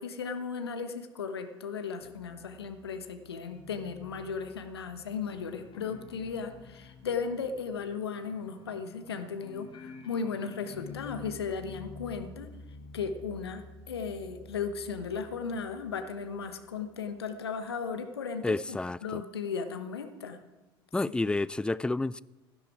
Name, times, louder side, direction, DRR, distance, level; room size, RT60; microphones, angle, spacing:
voice 1, 0.0-12.5 12.9-18.6 19.0-20.4, left 5 dB, 80° left, 1.2 m, -36 dB
sound 1, 2.0-17.3, left 4 dB, 40° left, 2.1 m, -50 dB
voice 2, 18.4-19.2 20.9-22.2, left 2 dB, 5° left, 0.3 m, -30 dB
16.5 x 11.5 x 4.8 m
figure-of-eight pair, 65°, 13 cm